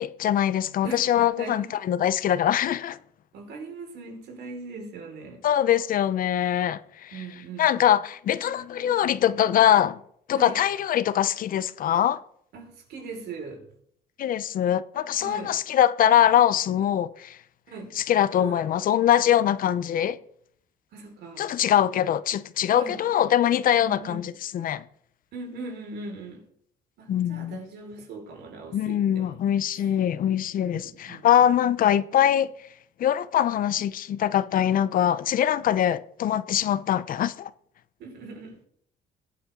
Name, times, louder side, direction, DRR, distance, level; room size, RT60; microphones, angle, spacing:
voice 1, 0.0-3.0 5.4-7.2 7.6-10.0 10.3-12.2 14.2-17.4 18.0-20.2 21.4-24.8 27.1-27.6 28.7-32.5 33.0-37.5, left 10 dB, 55° left, 0.8 m, -23 dB
voice 2, 1.4-1.7 3.3-5.4 7.1-7.9 10.3-10.6 12.5-13.6 15.2-15.6 17.7-18.0 18.4-18.6 20.9-21.4 22.7-23.0 23.7-24.3 25.3-26.5 27.0-29.4 29.8-29.9 30.7-31.5 38.0-38.6, right 3 dB, 75° right, 5.2 m, -40 dB
22.0 x 8.7 x 3.8 m
cardioid pair, 110°, 17 cm